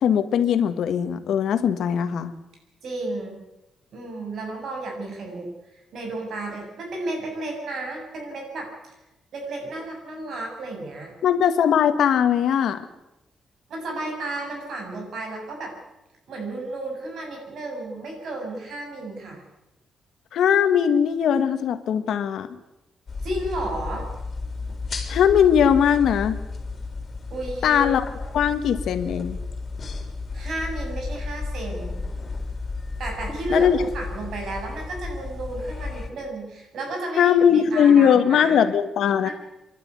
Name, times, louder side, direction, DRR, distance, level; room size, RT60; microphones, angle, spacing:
voice 1, 0.0-2.3 11.2-12.8 20.3-22.6 25.1-26.4 27.6-28.0 28.3-29.4 33.5-33.8 37.2-39.3, left 8 dB, 75° left, 9 dB, 1.6 m, -20 dB
voice 2, 2.8-3.4 3.9-8.7 9.3-11.1 13.7-15.7 16.3-19.4 23.2-24.1 27.3-27.8 30.3-32.0 33.0-38.6 39.2-39.3, right 2 dB, 65° right, 1 dB, 7.5 m, -32 dB
sound 1, 23.1-36.1, left 3 dB, 35° left, 3.6 m, -33 dB
28.5 x 12.0 x 9.7 m, 0.96 s
cardioid pair, 145°, 0 cm